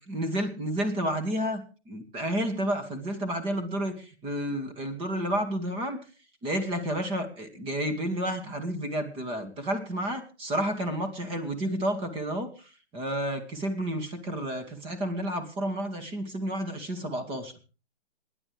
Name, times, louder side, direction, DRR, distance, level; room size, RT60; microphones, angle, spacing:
voice 1, 0.1-6.0 6.4-17.5, right 1 dB, 15° right, 7 dB, 2.3 m, -31 dB
27.0 x 11.0 x 3.5 m, 0.35 s
hypercardioid pair, 150°, 33 cm